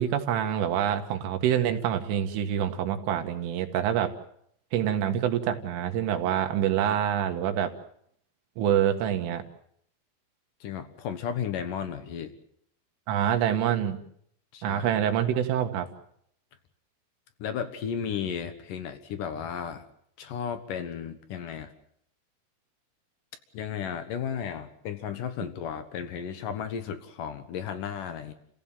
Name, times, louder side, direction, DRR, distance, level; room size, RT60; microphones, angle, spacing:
voice 1, 0.0-4.1 4.7-7.7 8.6-9.4 13.1-14.0 14.6-15.9, right 10 dB, 85° right, 6 dB, 4.2 m, -26 dB
voice 2, 10.6-12.3 14.5-14.9 17.4-19.9 20.2-21.7 23.5-28.3, left 8 dB, 65° left, 9 dB, 2.1 m, -34 dB
29.5 x 16.5 x 7.4 m, 0.70 s
omnidirectional pair, 5.6 m